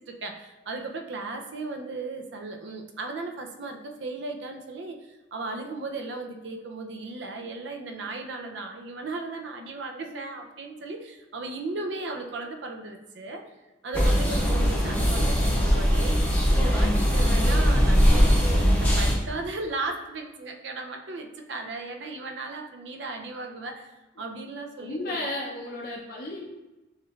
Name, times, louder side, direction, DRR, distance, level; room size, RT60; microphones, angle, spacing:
voice 1, 0.1-13.4 13.8-16.2 16.5-23.9 24.2-25.2, right 3 dB, 70° right, 4 dB, 0.5 m, -36 dB
sound 1, 13.9-19.1, equal, 10° left, 0.8 m, -21 dB
voice 2, 24.8-26.4, left 1 dB, 55° left, -2 dB, 0.6 m, -34 dB
6.4 x 3.1 x 2.4 m, 1.1 s
head